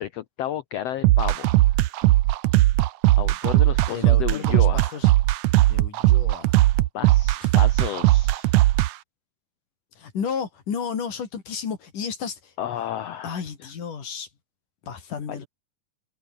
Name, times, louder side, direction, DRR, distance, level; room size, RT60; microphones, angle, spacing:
voice 1, 0.0-1.5 3.2-5.0 6.9-8.5 12.6-13.4 15.3-15.4, left 11 dB, 90° left, 1.4 m, -32 dB
sound 1, 1.0-8.9, right 16 dB, 75° right, 1.7 m, -18 dB
voice 2, 3.9-5.1 5.7-6.6 7.4-7.5 10.0-12.5 13.2-14.3 14.8-15.5, left 6 dB, 65° left, 5.1 m, -32 dB
omnidirectional pair, 4.1 m